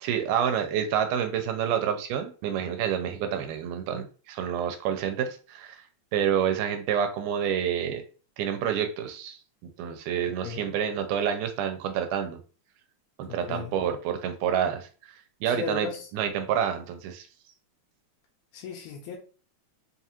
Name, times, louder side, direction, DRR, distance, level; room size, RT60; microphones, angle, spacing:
voice 1, 0.0-5.8 6.1-8.0 8.4-9.4 9.8-12.4 13.2-15.1 15.4-15.9 16.1-17.3, right 8 dB, 85° right, 6 dB, 2.1 m, -28 dB
voice 2, 10.4-10.8 13.5-13.7 15.5-16.1 18.5-19.2, left 6 dB, 80° left, -1 dB, 2.1 m, -36 dB
5.2 x 2.4 x 2.8 m, 0.38 s
omnidirectional pair, 3.6 m